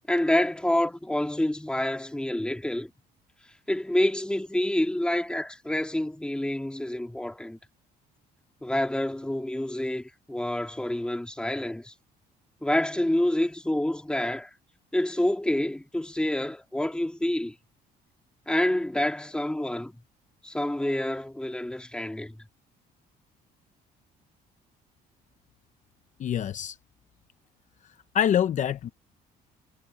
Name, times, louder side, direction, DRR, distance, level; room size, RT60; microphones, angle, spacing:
voice 1, 0.1-2.9 3.7-7.6 8.6-11.9 12.6-14.5 14.9-17.6 18.5-20.0 20.4-22.4, left 1 dB, 5° left, 2.5 m, -27 dB
voice 2, 26.2-26.8 28.1-28.9, left 9 dB, 50° left, 0.7 m, -25 dB
cardioid pair, 110°, 17 cm